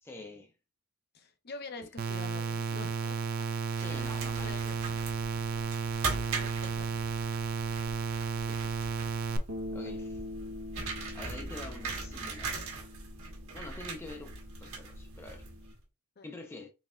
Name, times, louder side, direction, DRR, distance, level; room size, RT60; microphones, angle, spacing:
voice 1, 0.0-0.5 1.8-1.9 3.8-4.7 8.4-8.8 9.7-10.2 11.1-12.5 13.5-15.4 16.2-16.7, left 2 dB, 10° left, 0.5 m, -46 dB
voice 2, 1.1-3.2 3.8-5.2 5.8-7.0 9.8-9.9 16.2-16.3, left 4 dB, 45° left, 0.7 m, -47 dB
sound 1, 2.0-9.4, right 5 dB, 45° right, 0.5 m, -33 dB
sound 2, 3.7-15.8, right 3 dB, 65° right, 1.5 m, -40 dB
Bass guitar, 9.5-15.7, left 2 dB, 85° right, 1.0 m, -44 dB
4.2 x 3.4 x 2.4 m
head